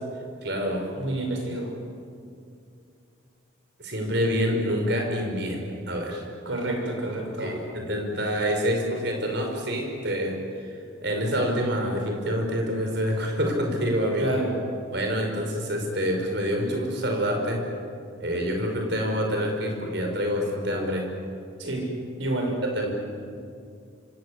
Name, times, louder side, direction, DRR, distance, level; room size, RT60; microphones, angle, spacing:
voice 1, 0.4-0.9 3.8-6.2 7.4-14.3 14.9-17.6 18.2-21.1 22.6-22.9, equal, 55° right, 2 dB, 5.5 m, -27 dB
voice 2, 1.0-1.7 6.5-7.6 14.2-14.5 21.6-21.9 22.2-22.6, right 2 dB, 70° right, 1 dB, 7.0 m, -29 dB
27.0 x 25.0 x 8.2 m, 2.4 s
head